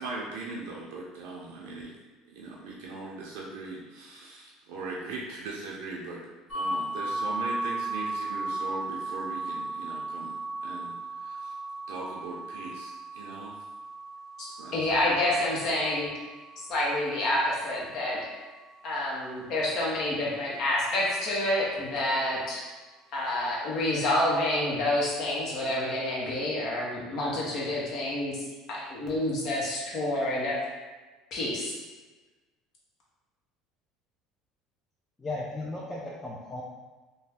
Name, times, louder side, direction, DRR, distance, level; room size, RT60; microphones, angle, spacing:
voice 1, 0.0-1.9 2.3-11.5 11.9-13.6 14.6-14.8, right 3 dB, 80° right, -3 dB, 0.5 m, -40 dB
sound 1, 6.5-18.2, right 2 dB, 40° left, 1.3 m, -36 dB
voice 2, 14.4-16.1 16.7-18.2 18.8-22.7 23.1-30.6 31.3-31.7, left 1 dB, 55° left, -4 dB, 0.9 m, -28 dB
voice 3, 35.2-36.6, left 2 dB, 20° left, -6 dB, 0.5 m, -35 dB
2.5 x 2.2 x 3.4 m, 1.3 s
supercardioid pair, 105°, 0 cm